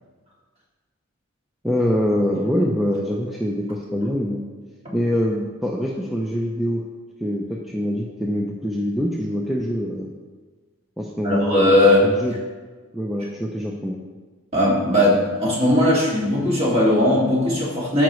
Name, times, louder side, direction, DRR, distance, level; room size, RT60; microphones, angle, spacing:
voice 1, 1.6-4.4 4.9-6.8 7.2-10.1 11.0-12.3 12.9-14.0, equal, ahead, -2 dB, 0.5 m, -24 dB
voice 2, 11.2-12.1 14.5-18.0, left 1 dB, 30° right, -6 dB, 2.4 m, -18 dB
14.0 x 5.1 x 3.1 m, 1.4 s
head